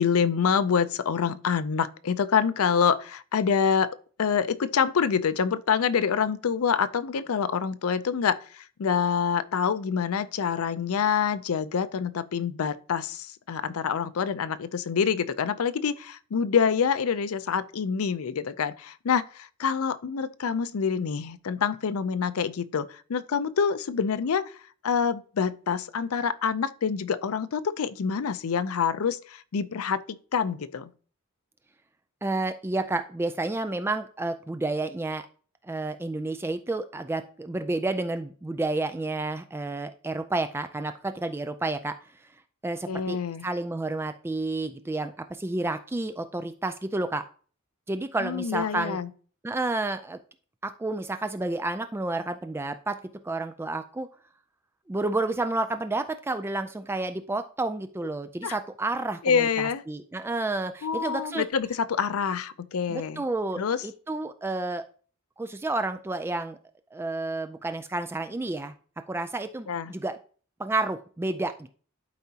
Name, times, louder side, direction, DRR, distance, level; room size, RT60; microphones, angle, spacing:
voice 1, 0.0-24.5 24.8-30.9 42.9-43.5 48.2-49.1 58.4-58.6 59.2-59.8 60.8-63.2 63.6-63.8 69.7-69.9, left 6 dB, 75° left, 0.5 m, -26 dB
voice 2, 32.2-35.3 35.6-41.9 42.6-43.2 43.4-47.2 47.9-49.0 49.4-50.2 50.6-53.0 53.2-54.1 54.9-61.5 62.9-64.8 65.4-66.6 66.9-68.7 69.1-70.2 70.6-71.7, right 2 dB, 10° right, 0.3 m, -30 dB
11.5 x 4.7 x 2.8 m
head